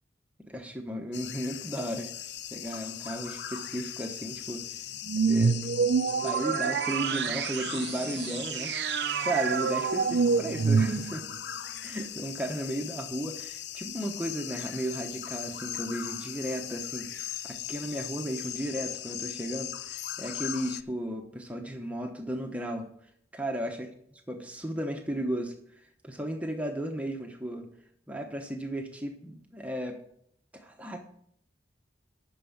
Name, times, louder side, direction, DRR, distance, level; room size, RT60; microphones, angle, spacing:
voice 1, 0.5-4.8 5.3-5.6 6.0-11.3 11.8-22.9 23.3-23.9 24.3-25.5 26.0-27.7 28.1-30.0 30.5-31.0, right 1 dB, 10° right, 3 dB, 0.9 m, -35 dB
sound 1, 1.1-20.8, left 11 dB, 80° left, 0.5 m, -39 dB
sound 2, 5.1-11.4, right 5 dB, 75° right, 0.4 m, -27 dB
9.2 x 6.2 x 7.1 m, 0.68 s
head